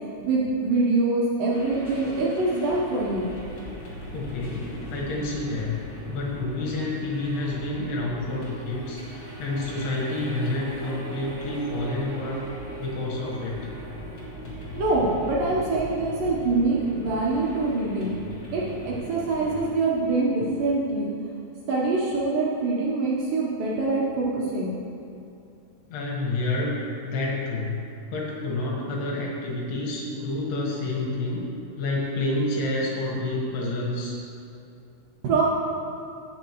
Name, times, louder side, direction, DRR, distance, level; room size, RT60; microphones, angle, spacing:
voice 1, 0.3-3.3 14.7-18.1 18.5-21.1 21.7-24.7 35.2-35.4, right 3 dB, 70° right, -5 dB, 2.3 m, -24 dB
sound 1, 1.5-19.7, right 1 dB, 35° left, 1.7 m, -39 dB
voice 2, 4.1-5.8 6.1-12.5 12.8-13.7 25.9-27.8 28.1-31.5 31.8-34.2, left 2 dB, 75° left, -4 dB, 3.4 m, -29 dB
16.0 x 6.5 x 3.0 m, 2.6 s
omnidirectional pair, 4.8 m